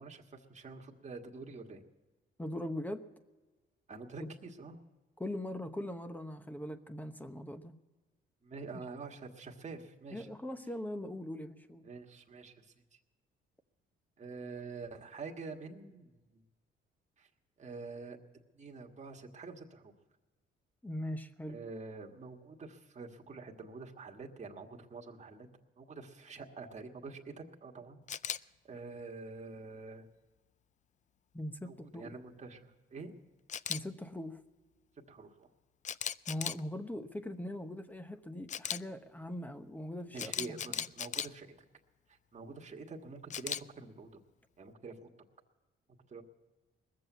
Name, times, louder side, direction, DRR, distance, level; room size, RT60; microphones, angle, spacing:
voice 1, 0.0-1.8 3.9-4.8 8.4-10.3 11.8-12.7 14.2-16.4 17.2-17.3 17.6-18.2 18.5-19.9 21.5-25.5 25.8-28.0 28.3-30.0 31.6-33.1 35.1-35.5 40.1-41.5 42.1-44.2 44.6-45.1 46.1-46.2, right 4 dB, 35° right, 1 dB, 1.6 m, -47 dB
voice 2, 2.4-3.0 4.2-4.3 5.2-7.7 10.1-11.9 20.8-21.6 31.3-32.1 33.7-34.4 36.3-40.8, left 1 dB, 10° left, 9 dB, 1.0 m, -41 dB
Camera, 28.1-28.4 33.5-33.8 35.8-36.6 38.5-38.8 40.2-41.3 43.3-43.6, left 8 dB, 40° left, 0.4 m, -36 dB
19.5 x 7.6 x 8.2 m, 1.2 s
cardioid pair, 90°, 20 cm